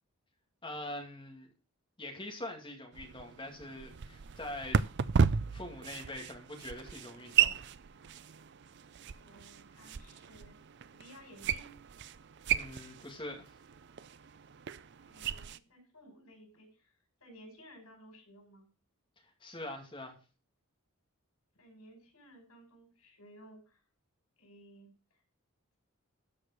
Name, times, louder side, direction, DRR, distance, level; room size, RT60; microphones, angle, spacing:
voice 1, 0.6-1.5 2.0-4.8 5.5-7.7 12.5-13.4 19.4-20.2, left 1 dB, 20° left, 2.2 m, -43 dB
sound 1, 2.9-15.6, right 7 dB, 55° right, 0.5 m, -35 dB
voice 2, 9.1-10.6 10.9-11.8 15.0-18.7 21.5-23.8 24.4-25.2, equal, 85° left, 5.7 m, -57 dB
13.0 x 5.0 x 6.3 m
head